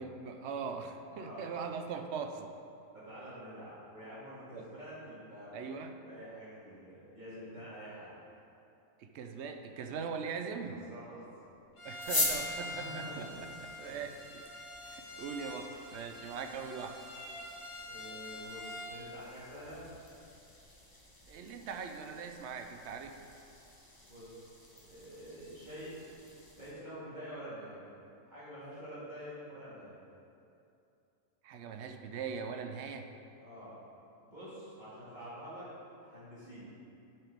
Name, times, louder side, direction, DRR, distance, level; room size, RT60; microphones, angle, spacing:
voice 1, 0.0-2.5 4.5-4.7 5.5-5.9 9.0-10.8 11.8-14.4 14.8-17.0 21.3-23.3 31.4-33.1, right 6 dB, 65° right, 6 dB, 0.8 m, -41 dB
voice 2, 1.1-1.5 2.9-5.6 6.0-8.1 10.5-11.3 12.4-13.3 13.8-14.1 17.9-19.9 24.1-24.3 24.7-25.9 26.6-27.9 28.2-30.0 33.4-33.8 34.2-35.7 36.0-36.7, equal, 35° right, -11 dB, 2.1 m, -47 dB
Bowed string instrument, 11.8-19.0, left 1 dB, 75° left, 1.5 m, -45 dB
sound 1, 12.0-26.7, left 2 dB, 20° left, 0.8 m, -43 dB
10.5 x 4.5 x 3.5 m, 2.7 s
omnidirectional pair, 1.4 m